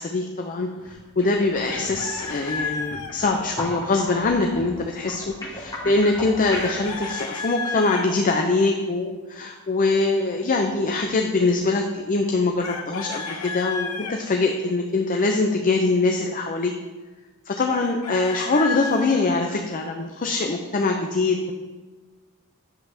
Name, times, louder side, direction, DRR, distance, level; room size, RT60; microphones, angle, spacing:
voice 1, 0.0-16.7 17.5-21.5, left 3 dB, 40° left, 2 dB, 0.6 m, -23 dB
sound 1, 0.7-0.9 1.2-6.9, left 1 dB, 15° left, 1.8 m, -36 dB
Chicken rooster, 1.6-3.1 6.5-8.1 12.6-14.2 17.7-19.2, left 4 dB, 80° left, 0.9 m, -32 dB
10.5 x 7.1 x 3.4 m, 1.2 s
head